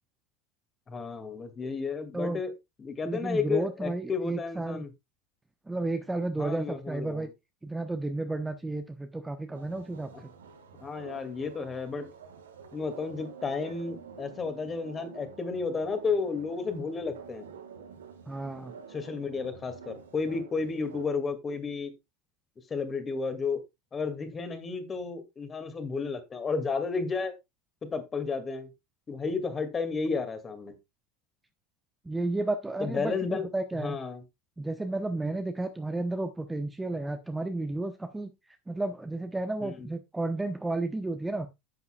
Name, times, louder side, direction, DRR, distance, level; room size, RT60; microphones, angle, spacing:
voice 1, 0.9-2.5 2.8-4.9 6.4-7.3 10.1-10.2 10.8-12.1 12.7-17.5 18.9-21.9 22.7-23.6 23.9-27.3 27.8-28.7 29.1-30.8 32.8-34.2 39.6-39.9, left 4 dB, 25° left, 8 dB, 2.2 m, -32 dB
voice 2, 3.0-4.8 5.7-7.3 7.6-10.1 18.3-18.7 32.0-34.0 34.6-38.3 38.7-41.5, right 2 dB, 10° right, 7 dB, 0.9 m, -32 dB
sound 1, 9.5-21.1, right 6 dB, 75° right, 1.6 m, -48 dB
10.5 x 8.2 x 2.3 m, 0.22 s
figure-of-eight pair, 75°, 0 cm